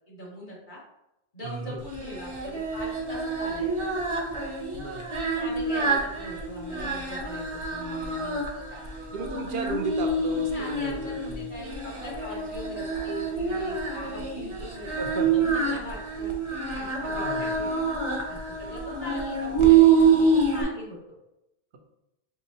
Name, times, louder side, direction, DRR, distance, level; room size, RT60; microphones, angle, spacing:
voice 1, 0.1-0.8 1.3-3.9 5.4-9.1 9.4-9.5 10.5-14.9 15.3-16.3 16.7-17.7 18.3-21.0, left 1 dB, 50° left, -6 dB, 1.6 m, -41 dB
voice 2, 1.4-1.8 4.7-5.1 9.1-11.5 14.9-15.3 17.1-17.6, right 4 dB, 75° right, 4 dB, 0.9 m, -35 dB
Singing, 1.9-20.6, right 5 dB, 30° right, 0.7 m, -26 dB
4.6 x 3.6 x 2.8 m, 0.89 s
omnidirectional pair, 1.1 m